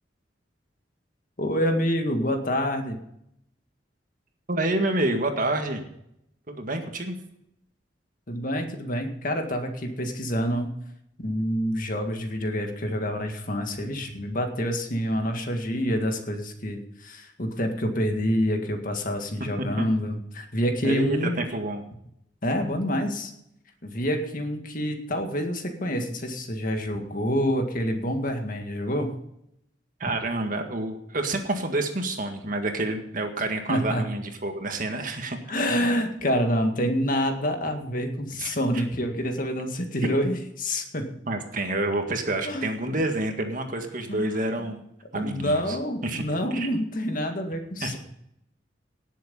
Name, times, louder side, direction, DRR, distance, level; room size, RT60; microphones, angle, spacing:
voice 1, 1.4-3.0 8.3-10.7 11.2-21.4 22.4-23.3 23.8-29.1 33.7-34.0 35.5-41.1 42.4-42.9 44.1-44.7 45.1-48.0, equal, 45° left, 5 dB, 1.9 m, -27 dB
voice 2, 4.5-5.8 6.5-7.1 19.6-19.9 20.8-21.8 30.0-35.4 38.4-38.6 41.3-44.8 45.1-45.8 46.0-46.2 46.5-46.7 47.8-48.0, right 2 dB, 45° right, 5 dB, 1.8 m, -28 dB
18.0 x 7.5 x 5.4 m, 0.77 s
head